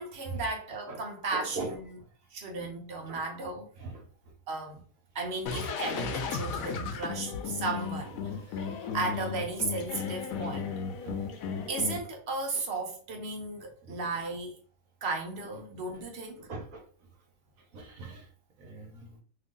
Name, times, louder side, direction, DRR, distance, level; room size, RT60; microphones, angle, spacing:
voice 1, 0.0-1.8 2.3-3.7 4.5-4.8 5.1-8.2 8.9-10.7 11.7-14.5 15.0-16.5, right 3 dB, 55° right, 1.0 m, -35 dB
voice 2, 1.3-1.8 3.1-3.2 3.8-4.0 8.4-8.5 11.0-11.2 13.8-14.0 15.9-16.0 16.4-16.8 17.7-18.3 18.6-19.2, right 3 dB, 75° right, 1.3 m, -40 dB
sound 1, 5.5-12.0, left 6 dB, 80° left, 1.0 m, -35 dB
3.0 x 2.5 x 3.7 m
omnidirectional pair, 1.5 m